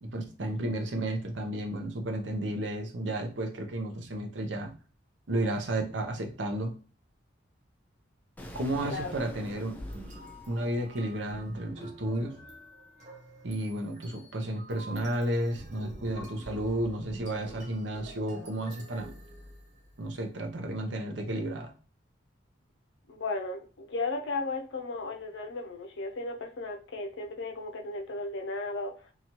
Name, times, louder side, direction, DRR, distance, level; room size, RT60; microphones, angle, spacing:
voice 1, 0.0-4.7 5.3-6.7 8.5-9.8 10.5-12.3 13.4-19.1 20.0-21.7, right 1 dB, 75° right, 4 dB, 0.6 m, -32 dB
Explosion, 8.4-11.3, left 1 dB, 10° left, 0.3 m, -46 dB
sound 1, 9.7-20.1, right 1 dB, 40° right, 0.8 m, -46 dB
voice 2, 23.1-28.9, left 3 dB, 75° left, 4 dB, 0.5 m, -35 dB
2.9 x 2.3 x 2.9 m, 0.37 s
head